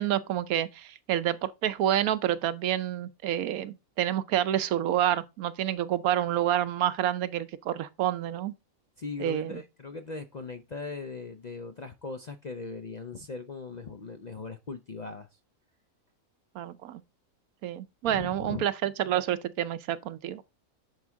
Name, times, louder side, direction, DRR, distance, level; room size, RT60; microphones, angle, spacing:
voice 1, 0.0-8.5 9.2-9.5 16.5-17.0 17.6-20.4, right 11 dB, 80° right, 1.1 m, -28 dB
voice 2, 9.0-15.4 18.0-18.6, left 4 dB, 55° left, 0.4 m, -39 dB
10.5 x 4.7 x 3.6 m
omnidirectional pair, 1.5 m